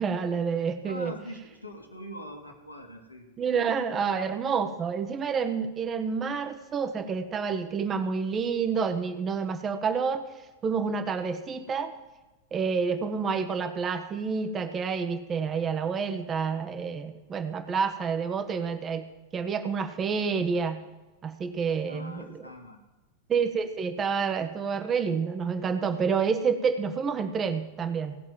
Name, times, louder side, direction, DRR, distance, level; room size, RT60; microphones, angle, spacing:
voice 1, 0.0-1.1 3.4-10.3 10.6-11.9 12.5-19.0 19.3-20.8 21.2-22.5 23.3-28.2, right 6 dB, 25° right, 9 dB, 0.9 m, -28 dB
voice 2, 0.8-3.2 21.9-22.8, equal, 85° left, 2 dB, 1.6 m, -42 dB
17.0 x 6.0 x 7.3 m, 1.1 s
figure-of-eight pair, 90°, 0 cm